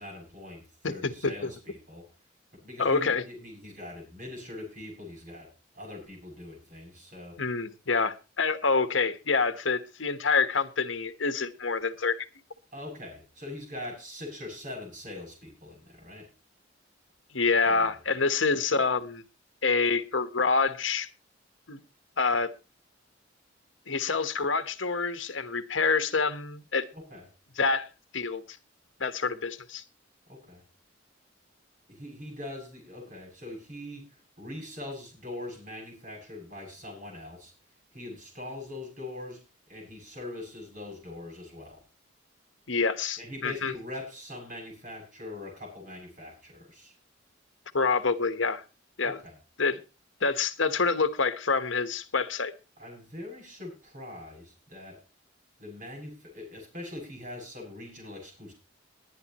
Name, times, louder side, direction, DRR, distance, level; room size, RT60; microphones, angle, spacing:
voice 1, 0.0-2.1 2.5-7.4 12.7-16.3 17.5-17.9 26.9-27.3 30.3-30.6 31.9-37.5 37.9-41.8 43.2-46.9 49.0-49.4 52.8-55.0 55.6-58.5, left 1 dB, 45° right, 2 dB, 7.9 m, -42 dB
voice 2, 2.8-3.2 7.4-12.3 17.3-19.2 19.6-21.1 21.7-21.8 22.2-22.5 23.9-26.9 27.6-27.9 28.1-28.6 29.0-29.8 42.7-43.7 47.7-48.6 49.0-49.2 49.6-49.8 50.2-52.5, left 4 dB, 75° left, 10 dB, 1.3 m, -27 dB
21.5 x 10.0 x 3.1 m, 0.30 s
head